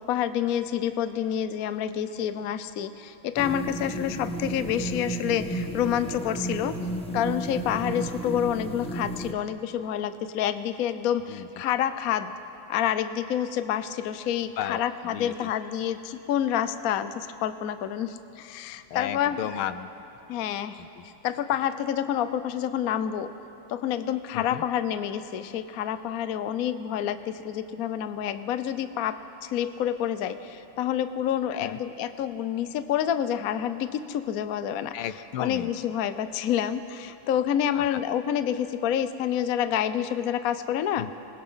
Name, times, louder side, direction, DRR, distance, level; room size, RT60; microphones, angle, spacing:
voice 1, 0.0-6.8 7.1-12.3 12.7-19.5 20.3-20.8 21.2-23.3 23.7-34.9 35.4-41.1, left 10 dB, 60° left, 11 dB, 0.9 m, -28 dB
sound 1, 3.4-9.3, right 2 dB, 5° left, 1.0 m, -33 dB
voice 2, 14.6-15.5 18.9-19.9 20.8-21.0 24.3-24.6 31.5-31.8 34.9-35.7 37.7-38.0 41.0-41.1, left 10 dB, 80° left, 12 dB, 1.6 m, -34 dB
26.5 x 20.5 x 5.7 m, 2.9 s
omnidirectional pair, 2.3 m